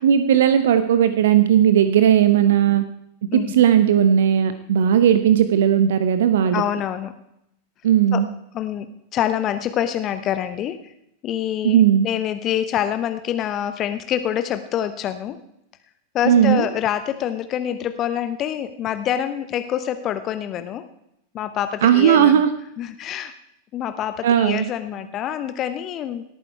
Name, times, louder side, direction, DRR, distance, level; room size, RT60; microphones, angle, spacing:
voice 1, 0.0-2.8 3.3-6.6 7.8-8.3 11.6-12.1 16.3-16.7 21.8-22.5 24.2-24.7, right 9 dB, 60° right, 11 dB, 0.8 m, -16 dB
voice 2, 6.5-7.1 8.1-8.2 8.5-8.9 9.1-10.9 11.2-15.4 16.1-20.8 21.3-22.4 22.8-23.4 23.7-26.2, left 10 dB, 30° left, 11 dB, 0.8 m, -26 dB
18.0 x 9.2 x 4.6 m, 0.79 s
figure-of-eight pair, 90°, 0 cm